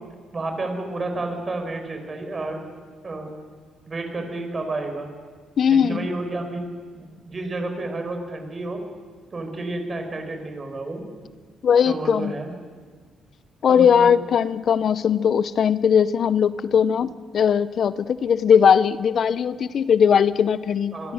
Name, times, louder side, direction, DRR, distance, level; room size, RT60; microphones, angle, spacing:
voice 1, 0.3-2.6 3.0-3.3 3.9-5.1 5.7-8.8 9.3-11.1 11.8-12.5 13.7-14.1 20.9-21.1, right 2 dB, 35° right, 5 dB, 5.3 m, -30 dB
voice 2, 5.6-6.1 11.6-12.3 13.6-21.1, left 7 dB, 60° left, 16 dB, 0.6 m, -19 dB
25.5 x 22.0 x 6.4 m, 1.5 s
cardioid pair, 90°, 0 cm